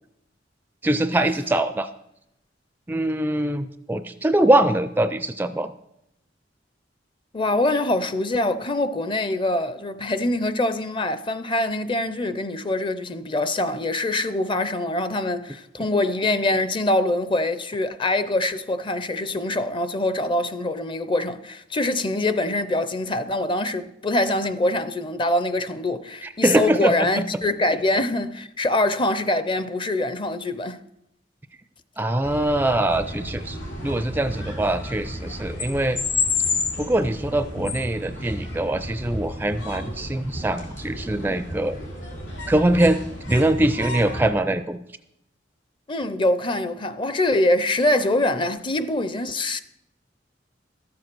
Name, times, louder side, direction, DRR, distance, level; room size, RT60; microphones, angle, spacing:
voice 1, 0.8-1.9 2.9-5.7 26.4-27.2 32.0-36.0 36.8-41.8 42.5-43.0 43.3-44.8, right 1 dB, 10° right, 0.4 m, -23 dB
voice 2, 7.3-30.8 45.9-49.6, left 1 dB, 30° left, 0.6 m, -24 dB
sound 1, 32.2-44.3, left 3 dB, 85° left, 3.7 m, -31 dB
13.0 x 7.6 x 6.1 m
head